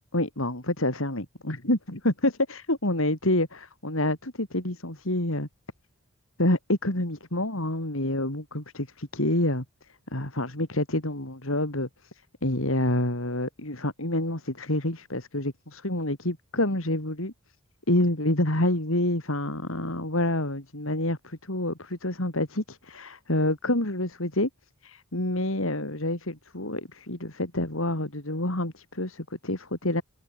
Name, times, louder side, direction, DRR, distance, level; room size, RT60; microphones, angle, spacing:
voice 1, 0.1-5.5 6.4-9.6 10.1-17.3 17.9-24.5 24.8-30.0, left 1 dB, 65° left, 4.0 m, -28 dB
head